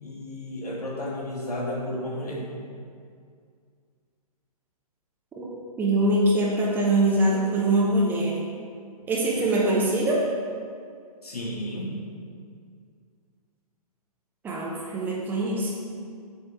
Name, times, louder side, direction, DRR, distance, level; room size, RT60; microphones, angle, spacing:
voice 1, 0.0-2.4 9.3-9.4 11.2-12.0, left 1 dB, 70° left, -3 dB, 1.6 m, -32 dB
voice 2, 5.8-8.4 9.1-10.2 14.4-15.7, right 1 dB, 10° right, -5 dB, 0.7 m, -23 dB
7.9 x 6.3 x 3.0 m, 2.2 s
figure-of-eight pair, 125°, 20 cm